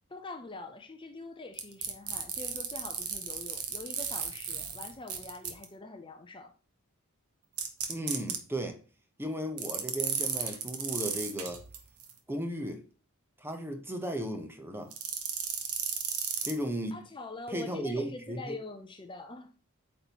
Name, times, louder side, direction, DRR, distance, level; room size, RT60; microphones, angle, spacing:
voice 1, 0.1-6.5 16.9-19.5, left 3 dB, 20° left, 0.6 m, -44 dB
sound 1, 1.6-5.6 7.6-8.4 9.6-12.1 14.9-16.6, right 7 dB, 85° right, 1.3 m, -34 dB
voice 2, 7.9-8.8 9.2-11.6 12.3-12.8 13.4-14.9 16.4-17.0 17.5-18.6, equal, 10° right, 0.8 m, -35 dB
8.6 x 5.4 x 3.0 m
head